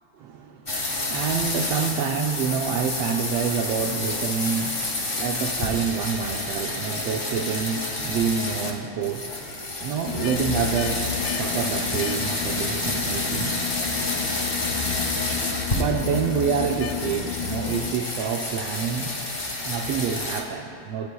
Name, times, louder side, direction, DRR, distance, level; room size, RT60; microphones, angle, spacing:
voice 1, 0.2-13.7 15.7-19.2 19.6-21.1, right 7 dB, 80° right, 3 dB, 1.4 m, -27 dB
sound 1, 0.7-8.7 9.0-20.4, left 2 dB, 30° left, 1.1 m, -29 dB
sound 2, 10.1-17.9, left 9 dB, 80° left, 1.4 m, -32 dB
27.5 x 14.5 x 2.3 m, 2.7 s
omnidirectional pair, 3.4 m